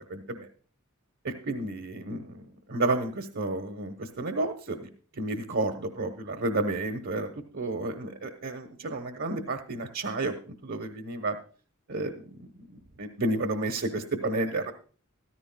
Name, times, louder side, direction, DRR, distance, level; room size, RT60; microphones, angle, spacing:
voice 1, 0.1-0.5 1.2-2.3 2.7-4.9 5.2-10.3 10.6-11.4 11.9-12.1 13.0-14.7, right 2 dB, 60° right, 6 dB, 1.0 m, -31 dB
14.0 x 13.5 x 2.3 m, 0.40 s
head